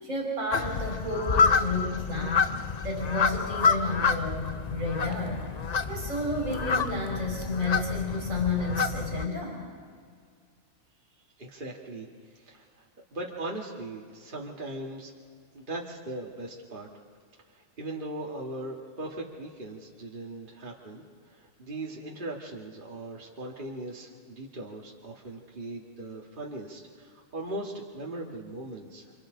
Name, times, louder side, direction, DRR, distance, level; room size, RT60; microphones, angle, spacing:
voice 1, 0.0-2.5 2.8-5.5 5.9-9.7, left 2 dB, 80° right, -2 dB, 4.3 m, -31 dB
sound 1, 0.5-9.3, left 5 dB, 40° left, 0.6 m, -28 dB
voice 2, 11.4-15.1 15.5-16.9 17.5-29.1, right 2 dB, 40° right, -2 dB, 1.9 m, -39 dB
28.5 x 27.0 x 3.8 m, 2.1 s
omnidirectional pair, 1.4 m